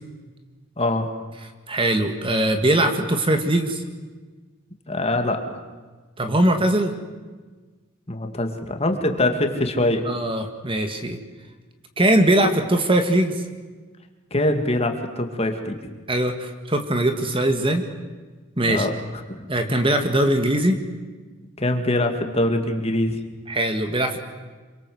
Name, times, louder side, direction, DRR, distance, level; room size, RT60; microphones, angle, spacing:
voice 1, 0.8-1.1 4.9-5.4 8.1-10.0 14.3-15.8 18.6-18.9 19.3-19.8 21.6-23.2, left 1 dB, 30° left, 5 dB, 2.4 m, -23 dB
voice 2, 1.7-3.8 6.2-6.9 10.1-11.2 12.0-13.4 16.1-17.9 18.6-18.9 19.5-20.8 23.5-24.2, right 1 dB, 25° right, 6 dB, 2.0 m, -21 dB
27.5 x 24.0 x 7.9 m, 1.4 s
head